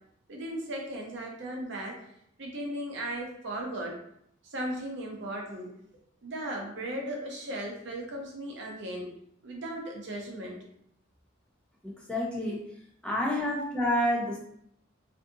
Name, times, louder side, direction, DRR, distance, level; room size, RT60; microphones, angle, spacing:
voice 1, 0.3-1.9 2.4-4.0 4.4-5.7 6.2-9.1 9.4-10.6, right 1 dB, 60° right, -1 dB, 0.6 m, -36 dB
voice 2, 11.8-12.6 13.0-14.4, left 1 dB, 5° left, -4 dB, 0.5 m, -29 dB
2.6 x 2.4 x 2.6 m, 0.71 s
head